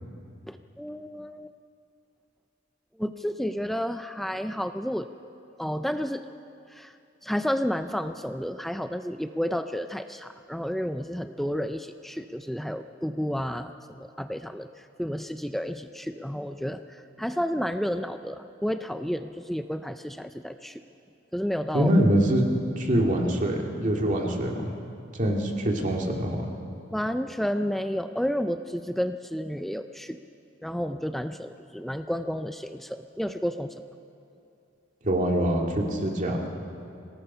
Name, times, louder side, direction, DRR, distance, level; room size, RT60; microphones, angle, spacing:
voice 1, 0.5-1.5 3.0-5.1 5.6-6.3 6.7-6.9 7.2-20.8 21.3-21.9 26.9-30.2 30.6-33.7, equal, ahead, 8 dB, 0.4 m, -31 dB
voice 2, 21.7-22.4 22.8-24.8 25.1-26.5 35.0-36.4, right 1 dB, 40° right, 1 dB, 2.3 m, -24 dB
25.5 x 18.5 x 5.6 m, 2.6 s
head